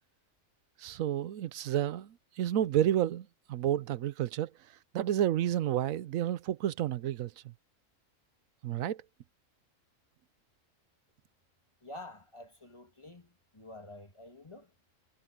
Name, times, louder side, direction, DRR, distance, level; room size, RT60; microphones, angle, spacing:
voice 1, 0.8-4.5 4.9-7.5 8.6-9.0, right 11 dB, 90° right, 1.1 m, -30 dB
voice 2, 11.8-14.7, left 1 dB, 20° left, 2.2 m, -49 dB
omnidirectional pair, 1.4 m